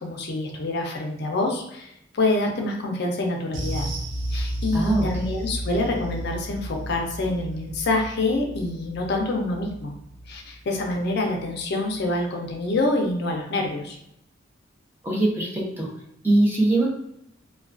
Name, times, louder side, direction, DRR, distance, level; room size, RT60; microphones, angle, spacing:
voice 1, 0.0-3.9 4.3-9.9 10.3-14.0, left 2 dB, 55° left, 1 dB, 0.5 m, -26 dB
sound 1, 3.5-12.2 12.5-12.7 13.1-13.2, right 1 dB, 85° right, 0.5 m, -33 dB
voice 2, 4.7-5.1 15.0-15.9 16.2-16.9, right 2 dB, 10° right, -4 dB, 0.6 m, -21 dB
2.3 x 2.2 x 2.4 m, 0.79 s
head